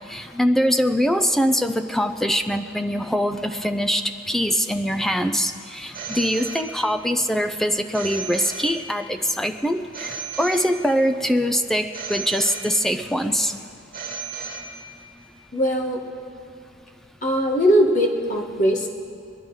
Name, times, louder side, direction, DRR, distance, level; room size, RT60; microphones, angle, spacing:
voice 1, 0.1-13.5, equal, ahead, 6 dB, 0.5 m, -23 dB
Telephone, 5.9-7.2 7.9-9.2 9.9-11.2 11.9-13.2 13.9-15.2, right 5 dB, 45° right, 1.5 m, -35 dB
voice 2, 15.5-16.0 17.2-18.9, equal, 40° left, 2 dB, 1.4 m, -20 dB
21.0 x 11.0 x 4.8 m, 2.4 s
head